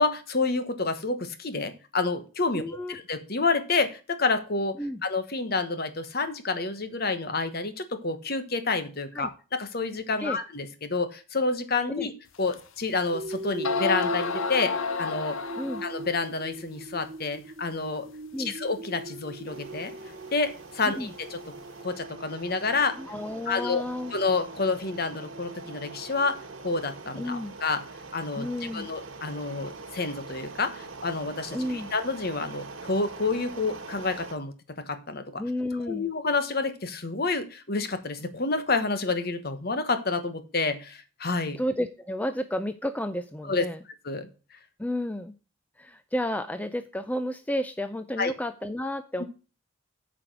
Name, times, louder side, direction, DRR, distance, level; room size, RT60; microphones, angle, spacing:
voice 1, 0.0-2.6 2.9-12.1 12.4-14.7 15.0-15.4 15.8-18.1 18.4-19.9 20.3-21.4 21.8-23.0 23.5-23.8 24.1-27.8 28.1-28.5 28.7-35.4 35.8-41.6 43.5-43.6 44.0-44.3 48.2-48.3 49.2-49.3, left 3 dB, 50° left, 10 dB, 1.2 m, -29 dB
voice 2, 2.5-3.0 4.8-5.0 9.1-9.3 10.2-10.4 12.0-12.1 15.6-15.8 18.3-18.6 21.0-21.1 23.0-24.1 27.2-27.6 28.4-28.9 31.5-31.9 35.4-36.1 41.6-43.8 44.8-45.3 45.8-49.2, left 1 dB, 5° left, 10 dB, 0.4 m, -31 dB
sound 1, 12.5-12.6 13.3-13.4 13.6-16.1, left 5 dB, 75° left, 0.8 m, -30 dB
sound 2, 13.1-27.3, right 2 dB, 40° right, 1.1 m, -41 dB
sound 3, 19.5-34.3, right 3 dB, 70° right, 1.6 m, -44 dB
8.9 x 5.1 x 6.1 m, 0.34 s
head